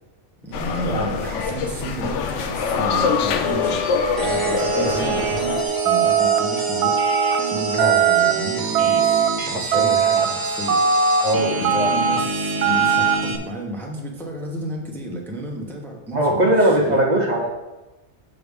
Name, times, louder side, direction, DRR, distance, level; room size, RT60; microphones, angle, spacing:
voice 1, 0.4-7.0 7.4-10.8 11.5-17.0, right 1 dB, ahead, -1 dB, 0.8 m, -32 dB
sound 1, 0.5-5.6, left 5 dB, 80° left, 0.9 m, -24 dB
sound 2, 4.2-13.4, right 4 dB, 25° right, 0.6 m, -26 dB
sound 3, 5.9-6.4 6.8-7.4 7.8-8.3 8.7-9.3 9.7-10.3 10.7-11.2 11.6-12.2 12.6-13.2, right 7 dB, 75° right, 0.9 m, -19 dB
voice 2, 9.7-10.3 11.2-11.9 16.1-17.5, right 1 dB, 40° right, -1 dB, 0.9 m, -20 dB
6.8 x 6.4 x 3.5 m, 1.1 s
omnidirectional pair, 1.2 m